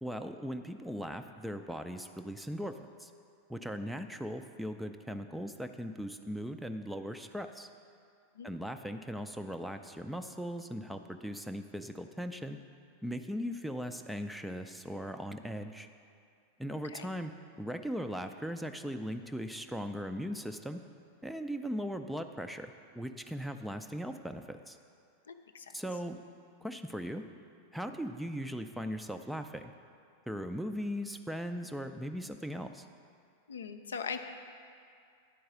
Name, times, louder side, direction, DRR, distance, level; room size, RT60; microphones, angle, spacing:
voice 1, 0.0-3.1 3.5-7.7 8.4-12.6 13.0-15.9 16.6-17.3 17.6-20.8 21.2-24.8 25.7-26.2 26.6-27.2 27.7-29.7 30.3-32.8, equal, ahead, 7 dB, 0.4 m, -39 dB
voice 2, 25.3-25.8 33.5-34.2, left 6 dB, 70° left, 7 dB, 0.4 m, -40 dB
10.0 x 4.7 x 6.0 m, 2.3 s
figure-of-eight pair, 90°, 0 cm